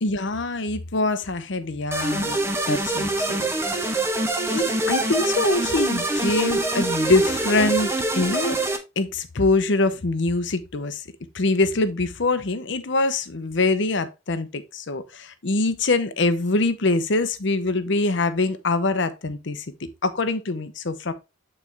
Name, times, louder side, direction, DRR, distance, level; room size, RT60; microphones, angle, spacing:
voice 1, 0.0-2.4 2.7-4.0 4.5-8.5 9.0-11.0 11.3-19.7 20.0-21.1, left 3 dB, 60° left, 0.8 m, -24 dB
sound 1, 1.9-8.8, right 2 dB, 15° right, 0.9 m, -24 dB
8.5 x 4.3 x 3.3 m
head